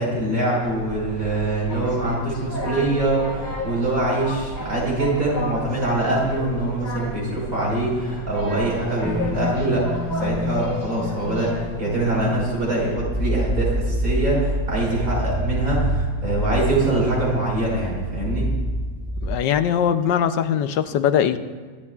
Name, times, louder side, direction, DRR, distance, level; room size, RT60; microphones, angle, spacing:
voice 1, 0.0-11.5 11.8-18.4, right 2 dB, 50° right, -4 dB, 5.3 m, -24 dB
sound 1, 0.6-12.9, left 1 dB, 25° left, 1.9 m, -33 dB
sound 2, 9.0-11.8 12.2-12.5 12.8-19.4, equal, ahead, 0.5 m, -27 dB
voice 2, 19.2-21.4, left 9 dB, 90° left, 11 dB, 1.4 m, -21 dB
24.5 x 12.5 x 2.4 m, 1.5 s
omnidirectional pair, 1.9 m